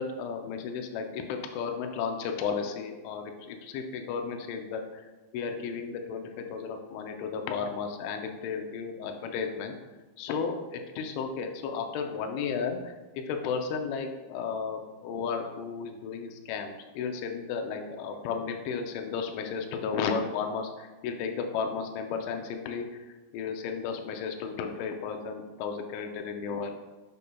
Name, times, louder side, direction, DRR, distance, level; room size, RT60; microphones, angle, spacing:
voice 1, 0.0-5.0 5.3-9.8 10.2-22.9 23.3-26.8, left 5 dB, 90° left, 4 dB, 3.1 m, -34 dB
8.6 x 5.2 x 2.3 m, 1.2 s
omnidirectional pair, 5.3 m